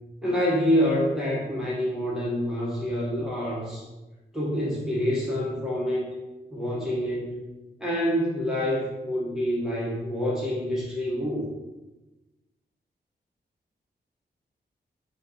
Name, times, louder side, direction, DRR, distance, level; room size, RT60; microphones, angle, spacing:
voice 1, 0.2-3.9 4.3-6.1 6.5-7.4 7.8-11.5, equal, 5° right, -8 dB, 1.1 m, -27 dB
4.3 x 2.8 x 4.1 m, 1.1 s
wide cardioid pair, 110°, 18 cm